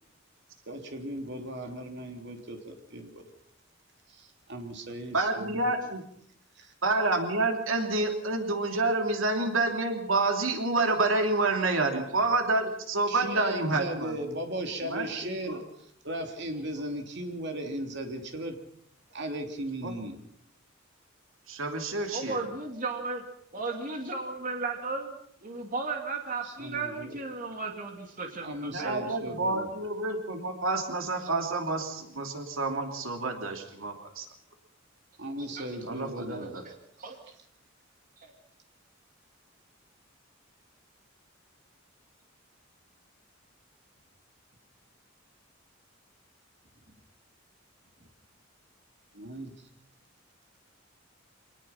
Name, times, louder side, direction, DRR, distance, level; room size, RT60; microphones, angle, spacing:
voice 1, 0.7-3.2 4.2-5.7 6.6-6.7 13.1-15.6 16.0-18.6 19.1-20.2 26.4-27.2 28.4-29.7 35.2-36.5 49.1-49.5, right 1 dB, 60° right, 4 dB, 3.2 m, -37 dB
voice 2, 5.1-6.0 6.8-14.2 14.8-15.6 19.8-19.9 21.5-22.4 28.6-34.3 35.8-36.6, right 2 dB, 80° right, 4 dB, 3.0 m, -28 dB
voice 3, 22.1-23.2 23.5-29.4 35.4-35.7 36.3-37.2 38.2-38.3, right 3 dB, 40° right, 3 dB, 2.6 m, -36 dB
25.5 x 19.5 x 5.8 m, 0.71 s
head